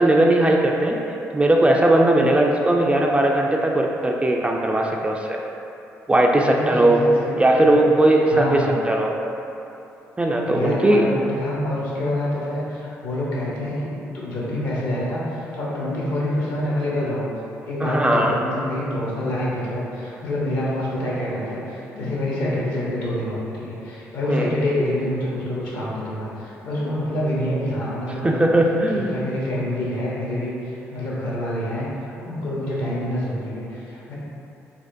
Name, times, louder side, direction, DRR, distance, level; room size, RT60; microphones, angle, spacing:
voice 1, 0.0-5.4 6.1-7.0 7.4-9.1 10.2-11.1 17.8-18.3 24.3-24.5 28.2-29.2, right 1 dB, 15° right, 0 dB, 0.3 m, -18 dB
voice 2, 6.4-7.7 8.3-8.7 10.4-17.3 17.6-28.4 28.9-34.1, left 1 dB, 65° left, -6 dB, 0.9 m, -27 dB
4.1 x 2.4 x 2.6 m, 2.9 s
figure-of-eight pair, 40°, 7 cm